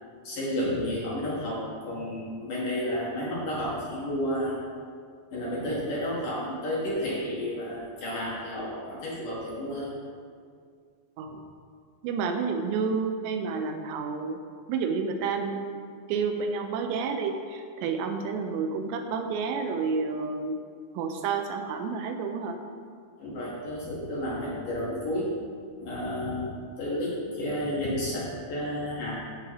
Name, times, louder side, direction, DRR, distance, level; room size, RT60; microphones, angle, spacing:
voice 1, 0.2-4.6 5.3-9.9 23.2-25.3 25.8-29.1, left 1 dB, 60° left, -6 dB, 2.5 m, -31 dB
voice 2, 12.0-14.4 14.7-15.8 16.1-20.6 20.9-22.6, right 5 dB, 80° right, 5 dB, 2.8 m, -30 dB
13.5 x 6.2 x 3.0 m, 2.1 s
omnidirectional pair, 5.1 m